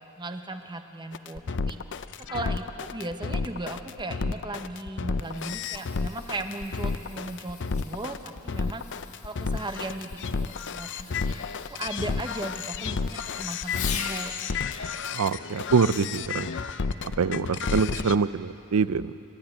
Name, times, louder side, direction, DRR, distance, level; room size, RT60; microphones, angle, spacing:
voice 1, 0.2-1.8 2.2-8.8 9.2-11.4 11.7-14.3 14.8-14.9, right 2 dB, 20° right, 6 dB, 1.1 m, -37 dB
sound 1, 1.1-18.1, left 5 dB, 60° left, 0.6 m, -31 dB
Fireworks, 5.1-14.4 16.4-16.7 17.4-17.5, left 8 dB, 80° left, 1.6 m, -42 dB
voice 2, 15.1-16.5 17.2-19.1, right 5 dB, 90° right, 16 dB, 0.5 m, -24 dB
29.5 x 11.5 x 8.9 m, 2.8 s
head